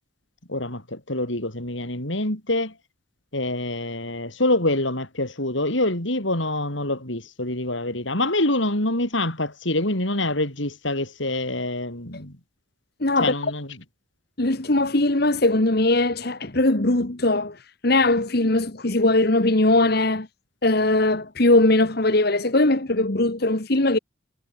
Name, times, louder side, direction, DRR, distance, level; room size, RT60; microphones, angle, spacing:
voice 1, 0.5-2.7 3.3-12.3 13.2-13.7, left 1 dB, 70° left, 6.3 m, -25 dB
voice 2, 13.0-13.3 14.4-17.6 17.8-20.3 20.6-24.0, left 2 dB, 55° left, 1.6 m, -20 dB
head